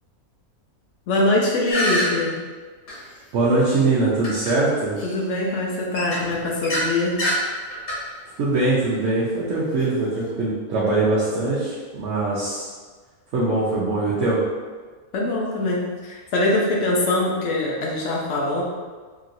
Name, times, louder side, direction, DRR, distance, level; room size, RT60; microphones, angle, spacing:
voice 1, 1.1-2.4 5.0-7.2 15.1-18.6, left 2 dB, 65° left, -2 dB, 0.9 m, -23 dB
sound 1, 1.7-2.0 2.9-3.0 4.2-4.5 5.0-5.1 5.9-6.9 7.2-7.4 7.7-8.0, equal, 85° left, 1.5 m, -25 dB
voice 2, 3.3-4.9 8.4-12.7 13.3-14.4, right 2 dB, 65° right, -7 dB, 0.9 m, -22 dB
3.0 x 2.7 x 2.5 m, 1.4 s
omnidirectional pair, 1.5 m